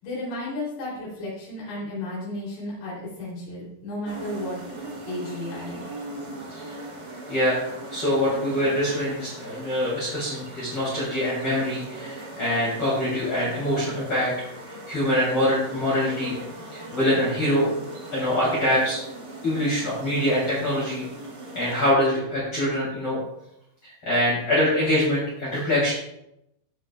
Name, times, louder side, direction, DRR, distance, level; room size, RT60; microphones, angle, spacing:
voice 1, 0.0-4.6 5.1-5.8, left 1 dB, 80° left, -6 dB, 5.6 m, -33 dB
sound 1, 4.0-21.9, right 2 dB, 35° right, 1.8 m, -39 dB
voice 2, 7.3-14.3 14.7-16.3 16.7-17.7 18.1-19.0 19.4-21.0 21.5-23.2 23.8-25.9, left 1 dB, 35° left, -7 dB, 3.7 m, -24 dB
15.0 x 8.1 x 2.4 m, 0.81 s
omnidirectional pair, 4.6 m